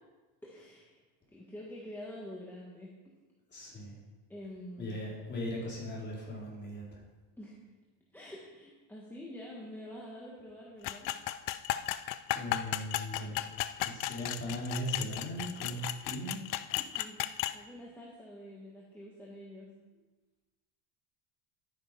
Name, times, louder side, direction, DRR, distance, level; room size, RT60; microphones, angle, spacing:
voice 1, 0.4-1.0 1.3-2.9 4.3-5.1 7.4-7.6 8.1-11.1 16.7-17.2 17.5-19.7, left 1 dB, 5° left, -4 dB, 1.5 m, -47 dB
voice 2, 3.5-3.9 4.8-7.0 12.3-13.4 13.8-16.4, equal, 20° left, -5 dB, 4.4 m, -38 dB
sound 1, 10.8-17.6, left 14 dB, 45° left, 0.5 m, -35 dB
11.5 x 9.5 x 5.3 m, 1.2 s
cardioid pair, 155°, 49 cm